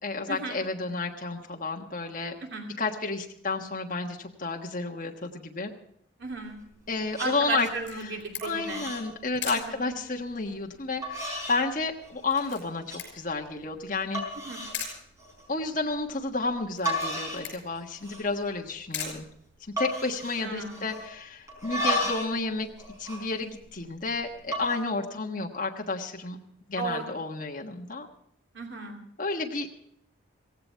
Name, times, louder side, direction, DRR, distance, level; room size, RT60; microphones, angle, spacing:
voice 1, 0.0-2.4 2.8-5.7 6.9-7.7 8.0-8.1 8.4-14.2 15.5-19.2 19.8-22.7 23.0-26.4 26.7-28.1 29.2-29.7, left 3 dB, 40° left, 1 dB, 1.4 m, -31 dB
sound 1, 6.2-6.8 7.1-7.3 7.8-8.1 8.4-9.1 9.4-9.7 10.4-10.5 11.0-11.6 12.0-12.5 12.9-13.0 13.6-13.7 14.1-14.8 15.2-15.5 16.5-16.6 16.9-17.5 17.8-18.4 18.7-18.8 19.0-19.3 19.8-21.1 21.5-22.4 22.6-23.9 24.4-24.8, equal, 15° right, 4.5 m, -33 dB
voice 2, 6.2-6.6 7.2-8.8 9.7-9.9 14.4-14.6 20.4-20.8 26.8-27.1 28.5-29.0, right 3 dB, 65° right, 1 dB, 2.6 m, -35 dB
Camera, 7.6-20.1, left 7 dB, 65° left, 6.2 m, -43 dB
16.5 x 16.0 x 4.5 m, 0.71 s
head